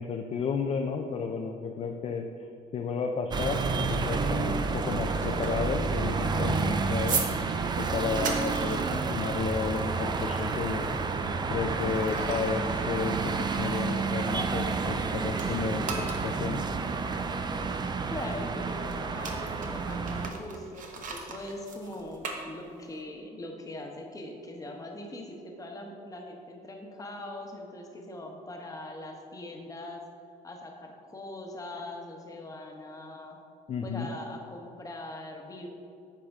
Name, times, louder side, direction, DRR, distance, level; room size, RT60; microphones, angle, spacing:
voice 1, 0.0-2.3 2.7-11.2 11.5-16.6 33.7-34.1, left 5 dB, 40° left, 3 dB, 0.5 m, -32 dB
sound 1, 3.3-20.3, right 4 dB, 25° right, 0.4 m, -30 dB
sound 2, 4.7-15.0 15.3-23.0, right 5 dB, 50° right, 1.0 m, -40 dB
voice 2, 18.1-30.1 30.4-33.4 33.8-35.7, left 1 dB, 20° left, 2 dB, 1.1 m, -41 dB
8.7 x 5.0 x 3.6 m, 2.5 s
cardioid pair, 110°, 17 cm